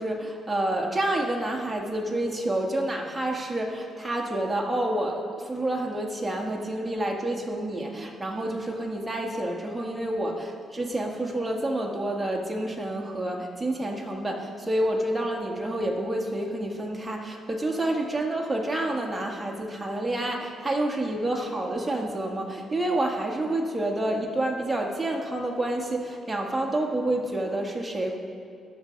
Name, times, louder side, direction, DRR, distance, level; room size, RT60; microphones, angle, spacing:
voice 1, 0.0-28.2, right 1 dB, 15° right, 1 dB, 1.6 m, -28 dB
13.5 x 6.8 x 5.2 m, 2.5 s
cardioid pair, 90°, 0 cm